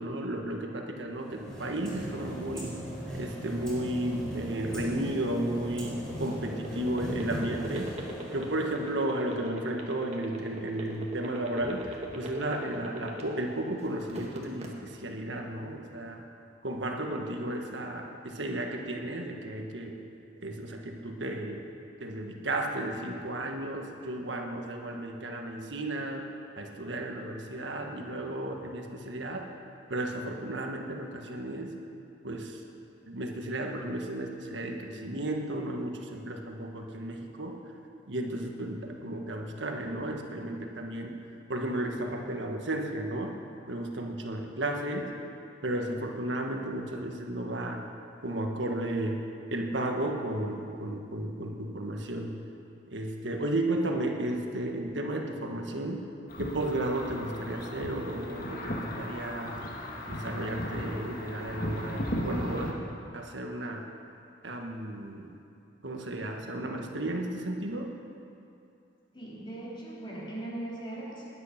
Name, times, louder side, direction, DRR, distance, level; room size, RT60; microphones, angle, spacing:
voice 1, 0.0-2.8 3.1-7.9 8.3-16.2 16.6-20.0 20.4-21.7 22.0-26.2 26.6-29.5 29.9-31.7 32.2-32.6 33.0-37.6 38.1-41.2 41.5-43.3 43.7-45.1 45.6-47.8 48.2-49.2 49.5-52.4 52.9-56.0 56.4-59.6 60.1-62.8 63.1-63.8 64.4-65.3 65.8-67.9, right 1 dB, 75° right, 2 dB, 1.5 m, -33 dB
sound 1, 1.1-9.4, right 1 dB, 5° left, 4.4 m, -39 dB
sound 2, 5.4-13.5 13.9-14.7, right 1 dB, 35° right, 1.7 m, -39 dB
sound 3, 56.3-62.7, equal, 50° left, 1.8 m, -36 dB
voice 2, 69.1-71.3, right 1 dB, 25° left, -6 dB, 3.4 m, -39 dB
20.5 x 9.6 x 5.9 m, 2.6 s
head